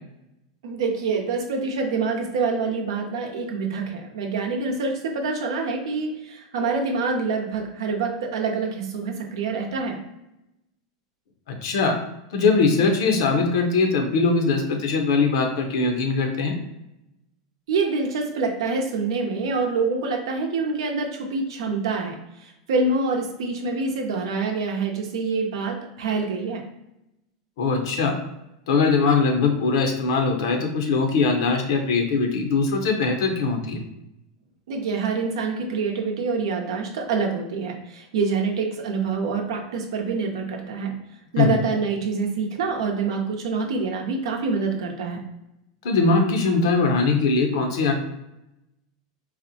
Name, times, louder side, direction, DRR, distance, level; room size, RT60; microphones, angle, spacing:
voice 1, 0.6-10.0 17.7-26.6 34.7-40.9 41.3-45.2, right 4 dB, 75° right, 2 dB, 0.7 m, -26 dB
voice 2, 11.5-12.0 12.3-16.6 27.6-28.2 28.7-33.8 41.4-41.5 45.8-48.0, left 4 dB, 70° left, 4 dB, 0.7 m, -21 dB
4.1 x 2.1 x 2.7 m, 0.89 s
hypercardioid pair, 110°, 3 cm